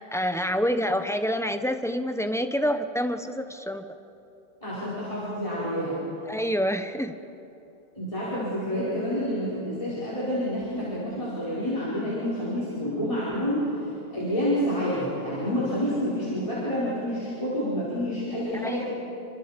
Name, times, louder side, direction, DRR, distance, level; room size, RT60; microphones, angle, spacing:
voice 1, 0.0-3.8 6.3-7.1 18.6-18.8, equal, 5° left, 7 dB, 0.9 m, -27 dB
voice 2, 4.6-6.0 7.9-13.7 14.1-18.9, equal, 30° left, -9 dB, 5.6 m, -28 dB
28.5 x 26.5 x 5.3 m, 2.9 s
omnidirectional pair, 1.1 m